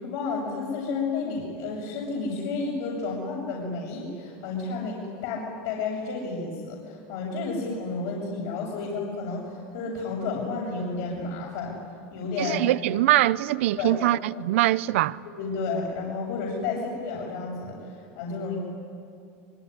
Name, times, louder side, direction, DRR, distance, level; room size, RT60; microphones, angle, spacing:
voice 1, 0.0-11.7 12.1-12.6 13.8-14.0 15.4-17.8 18.1-18.6, left 4 dB, 70° left, 7.2 m, -31 dB
voice 2, 12.4-15.2, right 15 dB, 80° right, 0.7 m, -23 dB
25.0 x 22.5 x 9.9 m
supercardioid pair, 130°, 7 cm